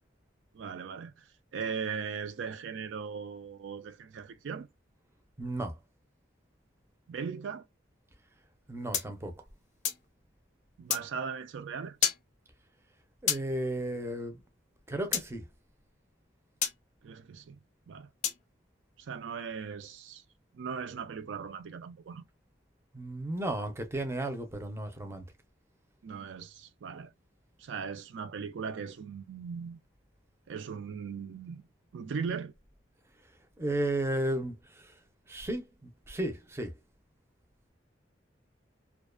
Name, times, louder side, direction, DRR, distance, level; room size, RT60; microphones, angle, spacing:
voice 1, 0.5-1.2 1.5-4.7 7.1-7.7 10.8-12.1 17.0-17.6 17.9-18.1 19.0-20.2 20.5-22.3 26.0-27.1 27.6-29.8 30.5-31.6 31.9-32.5, right 6 dB, 85° right, 0.4 m, -38 dB
voice 2, 5.4-5.8 8.7-9.3 13.2-14.4 14.9-15.4 22.9-25.3 33.6-34.9 35.3-36.8, right 1 dB, 15° right, 0.5 m, -34 dB
sound 1, 8.9-10.1 10.9-11.1 12.0-12.2 13.3-13.5 15.1-15.3 16.6-16.8 18.2-18.4, left 8 dB, 40° left, 0.5 m, -30 dB
2.4 x 2.2 x 2.3 m
head